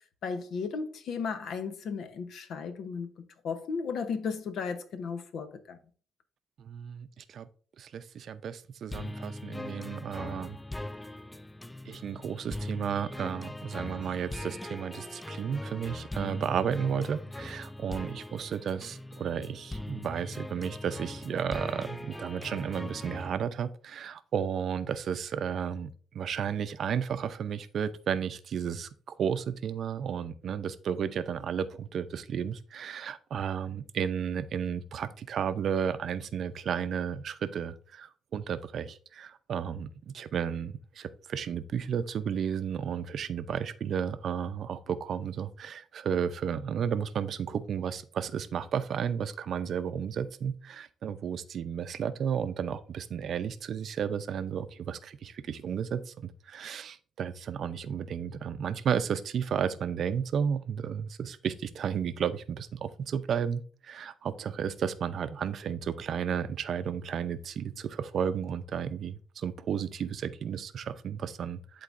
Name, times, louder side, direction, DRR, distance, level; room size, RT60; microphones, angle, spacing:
voice 1, 0.2-3.1 3.4-5.8, left 5 dB, 70° left, 0.9 m, -35 dB
voice 2, 6.6-7.5 7.8-10.6 11.9-25.9 26.1-71.8, right 7 dB, 60° right, 0.5 m, -33 dB
sound 1, 8.9-23.3, left 1 dB, 10° left, 0.3 m, -40 dB
11.0 x 3.9 x 2.5 m
cardioid pair, 90°, 0 cm